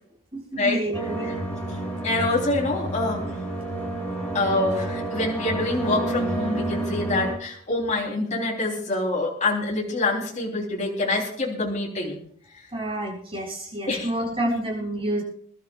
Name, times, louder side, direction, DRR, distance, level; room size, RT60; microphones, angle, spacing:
voice 1, 0.3-1.3 12.7-15.2, right 1 dB, 30° right, -4 dB, 7.0 m, -29 dB
sound 1, 0.9-7.3, right 2 dB, 10° left, 4.3 m, -30 dB
voice 2, 2.0-3.3 4.3-12.2 13.9-14.1 14.4-14.6, left 2 dB, 40° left, -2 dB, 3.4 m, -26 dB
27.5 x 12.5 x 2.4 m, 0.64 s
head